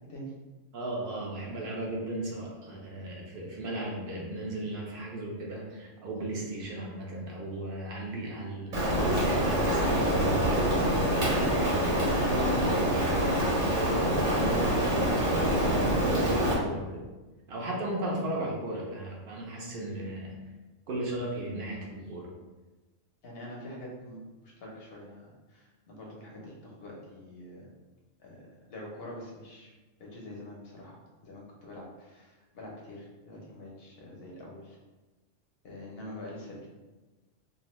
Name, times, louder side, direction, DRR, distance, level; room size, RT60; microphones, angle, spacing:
voice 1, 0.7-10.7 11.1-17.0 17.5-20.4 20.9-22.3, right 1 dB, 55° right, -2 dB, 0.7 m, -36 dB
Rain, 8.7-16.6, equal, 75° right, 1.3 m, -26 dB
voice 2, 23.2-27.7 28.2-29.7 30.0-31.0 31.2-34.8 35.6-36.7, left 1 dB, 55° left, -2 dB, 0.8 m, -45 dB
2.7 x 2.1 x 3.0 m, 1.2 s
omnidirectional pair, 1.3 m